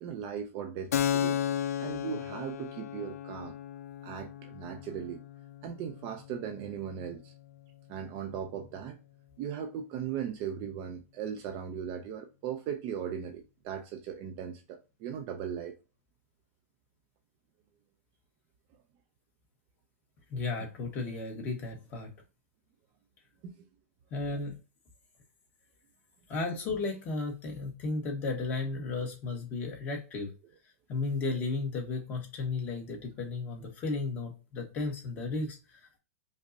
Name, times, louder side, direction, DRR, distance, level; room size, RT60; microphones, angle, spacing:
voice 1, 0.0-3.6 4.0-5.2 5.6-7.3 7.9-9.0 9.4-15.7 23.4-23.7, right 8 dB, 25° right, 0.3 m, -38 dB
Keyboard (musical), 0.9-8.2, left 9 dB, 85° left, 0.4 m, -35 dB
voice 2, 20.3-22.1 24.1-24.5 26.3-30.3 30.9-36.0, left 3 dB, 20° left, 0.9 m, -34 dB
5.1 x 2.0 x 2.4 m
supercardioid pair, 165°, 8 cm